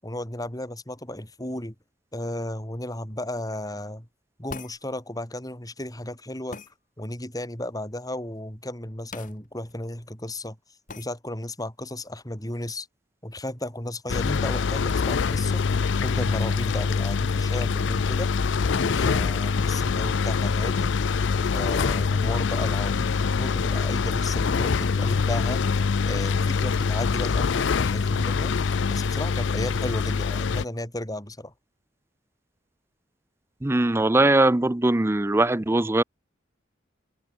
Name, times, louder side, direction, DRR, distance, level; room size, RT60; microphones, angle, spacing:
voice 1, 0.0-1.7 2.1-4.1 4.4-6.6 7.0-10.6 11.0-12.9 13.2-18.3 18.7-21.1 21.4-25.6 26.0-31.5, left 1 dB, 20° left, 6.5 m, -34 dB
sound 1, 4.5-4.8 6.5-6.7 9.1-9.3 9.7-9.8 10.9-11.1, left 4 dB, 45° left, 2.5 m, -39 dB
sound 2, 14.1-30.6, left 5 dB, 75° left, 0.5 m, -24 dB
voice 2, 33.6-36.0, right 2 dB, 15° right, 0.5 m, -21 dB
open air
head